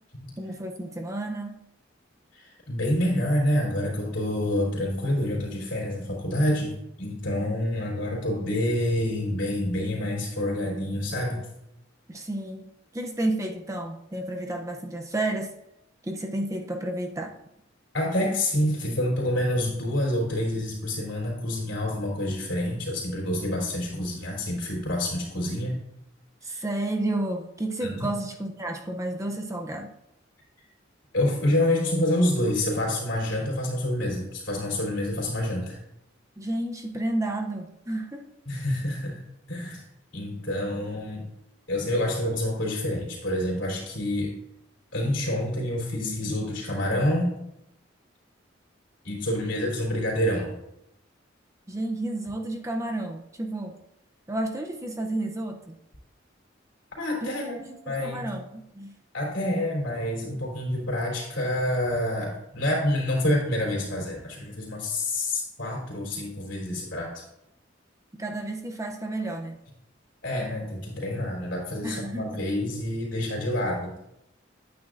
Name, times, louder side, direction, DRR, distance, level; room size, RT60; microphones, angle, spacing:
voice 1, 0.4-1.6 12.1-15.5 16.0-17.4 26.4-29.9 36.4-38.3 51.7-53.8 54.3-55.8 57.2-57.8 58.0-58.9 68.1-69.6 71.8-72.4, right 1 dB, 15° right, 3 dB, 0.6 m, -31 dB
voice 2, 2.3-11.4 17.9-25.7 26.5-26.6 27.8-28.1 31.1-35.8 38.5-39.2 39.5-39.8 40.1-41.2 41.7-44.3 44.9-47.3 49.0-50.5 57.0-58.3 59.1-67.2 70.2-73.9, left 1 dB, 70° left, -2 dB, 3.4 m, -27 dB
9.3 x 8.7 x 2.5 m, 0.85 s
head